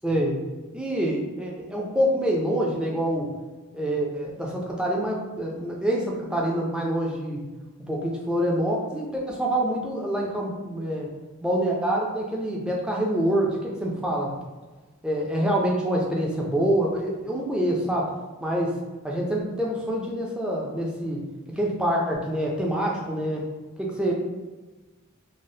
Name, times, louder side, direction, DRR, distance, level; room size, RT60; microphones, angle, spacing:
voice 1, 0.0-0.4 0.7-3.3 3.7-7.4 7.9-11.1 11.4-14.3 15.0-18.1 18.4-18.7 19.0-21.2 21.6-23.5 23.8-24.1, right 1 dB, 5° right, -3 dB, 0.4 m, -26 dB
3.2 x 2.0 x 2.7 m, 1.2 s
head